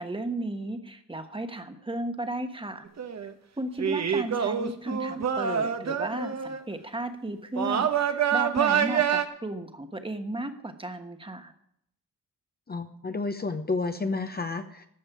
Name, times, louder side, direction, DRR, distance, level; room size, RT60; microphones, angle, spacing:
voice 1, 0.0-2.9 3.6-11.5, right 1 dB, 15° right, 7 dB, 1.3 m, -34 dB
sound 1, 2.9-3.3 3.8-6.6 7.6-9.3, right 8 dB, 55° right, 1.2 m, -26 dB
voice 2, 12.7-14.9, left 3 dB, 30° left, 8 dB, 0.9 m, -31 dB
14.0 x 5.4 x 9.2 m, 0.71 s
cardioid pair, 100°, 32 cm